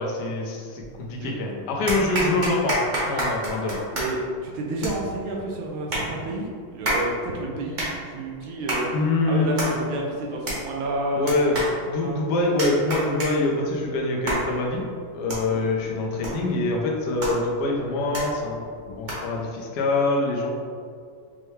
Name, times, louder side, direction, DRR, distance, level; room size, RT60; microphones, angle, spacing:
voice 1, 0.0-3.8 8.9-9.6 11.1-11.6 11.8-14.9 15.1-20.5, left 2 dB, 65° left, -1 dB, 1.1 m, -25 dB
sound 1, 0.8-1.3 1.9-19.4, right 1 dB, 45° right, 0.6 m, -32 dB
voice 2, 3.9-6.5 6.7-8.9 9.3-11.2 12.0-12.2 15.4-15.6, right 2 dB, 75° right, -1 dB, 1.3 m, -30 dB
5.6 x 2.2 x 3.1 m, 2.2 s
omnidirectional pair, 2.3 m